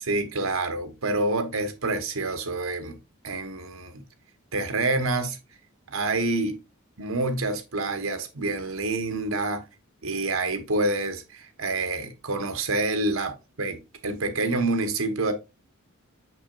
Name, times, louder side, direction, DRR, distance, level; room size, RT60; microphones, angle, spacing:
voice 1, 0.0-3.0 3.2-4.0 4.5-5.4 5.9-6.6 7.0-9.6 10.0-15.3, right 2 dB, 80° right, 1.3 m, -27 dB
6.3 x 6.0 x 2.5 m
head